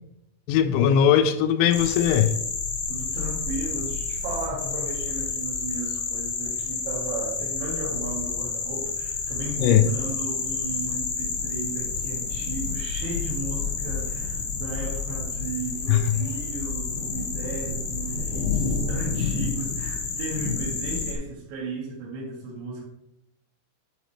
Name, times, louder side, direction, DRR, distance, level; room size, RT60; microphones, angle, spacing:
voice 1, 0.5-2.4 9.6-9.8 15.9-16.0, left 9 dB, 85° left, 3.1 m, -19 dB
sound 1, 1.7-21.1, left 5 dB, 65° left, 2.6 m, -29 dB
voice 2, 2.9-22.9, right 3 dB, 75° right, 4.1 m, -35 dB
9.2 x 9.2 x 3.2 m
omnidirectional pair, 5.3 m